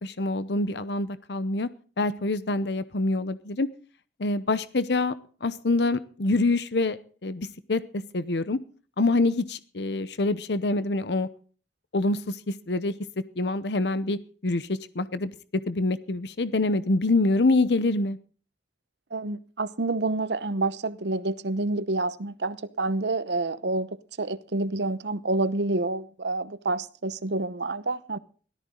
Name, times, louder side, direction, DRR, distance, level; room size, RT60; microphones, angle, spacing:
voice 1, 0.0-1.7 2.0-3.7 4.2-5.1 5.4-8.6 9.0-11.3 11.9-12.9 13.4-15.3 15.7-18.2, left 2 dB, 65° left, 0.8 m, -26 dB
voice 2, 19.1-23.9 24.2-28.2, right 2 dB, 75° right, 0.9 m, -28 dB
17.5 x 13.5 x 3.8 m
head